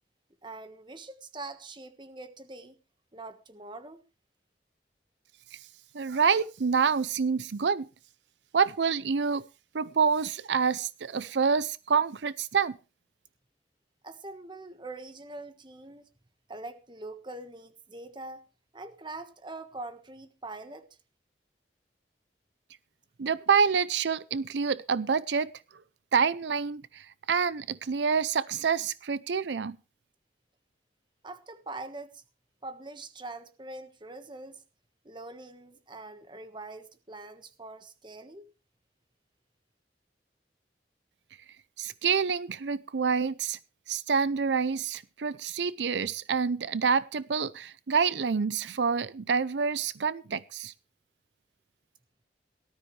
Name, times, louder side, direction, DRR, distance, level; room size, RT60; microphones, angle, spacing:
voice 1, 0.4-2.8 3.1-4.0 14.0-16.1 16.5-18.5 18.7-20.9 31.2-32.2 32.6-34.6 35.0-38.5, right 2 dB, 25° right, 1.4 m, -43 dB
voice 2, 5.9-7.9 8.5-9.4 9.7-12.8 23.2-25.5 26.1-29.8 41.8-43.6 43.9-50.7, right 6 dB, 85° right, 0.6 m, -27 dB
18.5 x 12.5 x 3.2 m
head